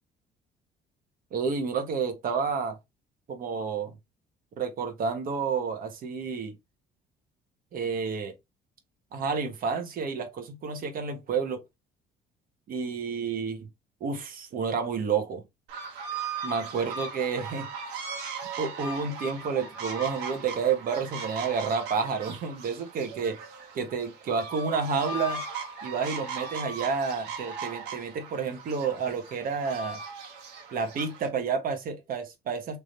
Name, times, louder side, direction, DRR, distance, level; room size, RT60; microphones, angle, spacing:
voice 1, 1.3-2.8 3.3-3.9 4.6-6.5 7.7-8.3 9.1-11.6 12.7-13.7 14.0-15.4 16.4-17.6 18.6-23.4 23.7-25.4 25.8-30.0 30.7-32.8, right 5 dB, 55° right, 1.3 m, -30 dB
sound 1, 15.7-31.3, right 4 dB, 90° right, 1.4 m, -38 dB
3.4 x 3.0 x 4.0 m
cardioid pair, 110°, 17 cm